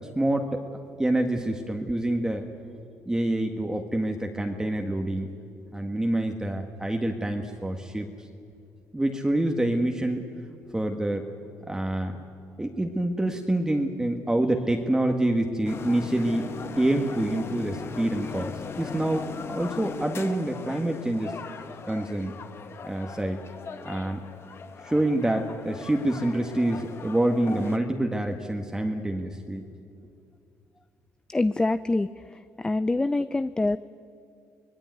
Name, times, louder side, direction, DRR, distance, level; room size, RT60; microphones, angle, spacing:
voice 1, 0.2-0.6 1.0-2.4 3.1-5.3 5.7-8.1 8.9-10.3 10.7-11.3 11.7-12.2 12.6-21.3 21.9-22.3 22.8-23.4 23.8-24.2 24.8-29.7, right 1 dB, 10° right, 3 dB, 1.7 m, -27 dB
sound 1, 15.7-27.8, left 5 dB, 45° left, 1.5 m, -39 dB
voice 2, 31.3-33.8, left 2 dB, 15° left, 13 dB, 0.5 m, -26 dB
24.5 x 19.5 x 9.3 m, 2.4 s
cardioid pair, 95°, 6 cm